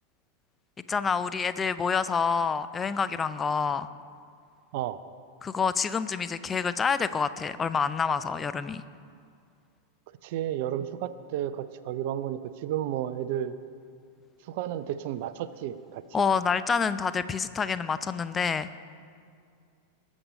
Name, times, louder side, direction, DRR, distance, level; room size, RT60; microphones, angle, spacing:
voice 1, 0.9-3.9 5.4-8.8 16.1-18.8, left 5 dB, 20° left, 14 dB, 0.5 m, -27 dB
voice 2, 10.2-13.6 14.4-16.3, right 11 dB, 50° right, 13 dB, 0.4 m, -32 dB
20.0 x 7.2 x 5.3 m, 2.3 s
figure-of-eight pair, 90°, 0 cm